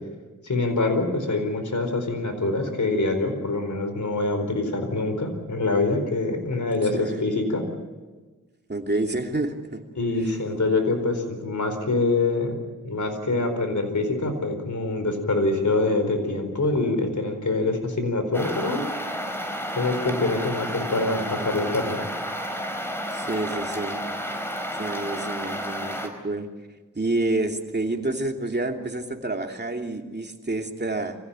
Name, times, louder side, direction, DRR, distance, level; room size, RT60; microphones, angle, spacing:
voice 1, 0.4-7.6 10.0-12.5 12.8-18.8 19.7-22.0, left 2 dB, 65° left, 6 dB, 4.6 m, -25 dB
voice 2, 6.9-7.2 8.7-9.8 10.2-10.3 23.1-24.0 24.8-26.5 26.9-31.2, right 2 dB, 30° right, 3 dB, 2.8 m, -28 dB
sound 1, 18.3-26.1, equal, 5° left, 4.8 m, -31 dB
25.0 x 16.0 x 9.0 m, 1.3 s
cardioid pair, 45°, 31 cm